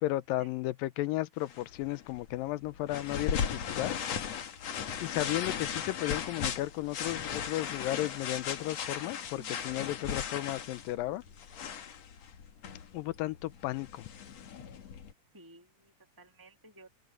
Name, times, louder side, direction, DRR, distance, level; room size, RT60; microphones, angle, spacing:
voice 1, 0.0-3.9 5.0-11.2 12.9-14.0, left 16 dB, 90° left, 2.5 m, -34 dB
sound 1, 1.4-15.1, left 7 dB, 55° left, 2.6 m, -37 dB
voice 2, 15.3-16.9, right 2 dB, 15° right, 0.7 m, -55 dB
omnidirectional pair, 4.0 m